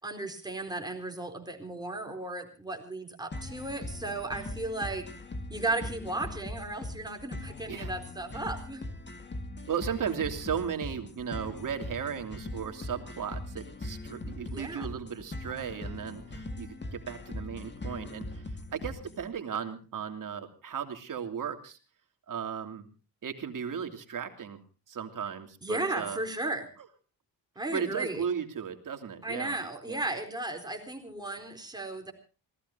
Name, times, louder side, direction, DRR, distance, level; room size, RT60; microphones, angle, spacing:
voice 1, 0.0-5.1 5.5-8.8 14.5-14.9 25.6-26.7 27.6-28.2 29.2-32.1, right 2 dB, 10° right, 4 dB, 4.2 m, -35 dB
sound 1, 3.3-19.3, left 2 dB, 25° left, 2.1 m, -40 dB
voice 2, 9.7-21.8 22.3-22.9 23.2-24.6 24.9-26.2 27.7-29.6 29.9-30.0, right 7 dB, 55° right, 6 dB, 2.9 m, -36 dB
27.0 x 18.5 x 2.8 m, 0.35 s
cardioid pair, 125°, 39 cm